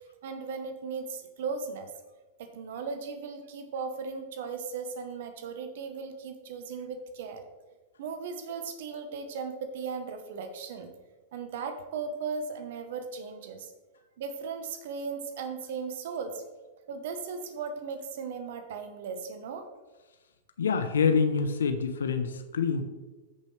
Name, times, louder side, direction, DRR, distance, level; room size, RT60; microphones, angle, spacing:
voice 1, 0.2-1.9 2.4-7.4 8.0-10.9 11.3-13.7 14.2-16.4 16.9-19.7, right 5 dB, 65° right, 7 dB, 1.1 m, -37 dB
voice 2, 20.6-22.8, left 5 dB, 85° left, 8 dB, 0.8 m, -26 dB
13.5 x 5.6 x 3.3 m, 1.2 s
hypercardioid pair, 105°, 0 cm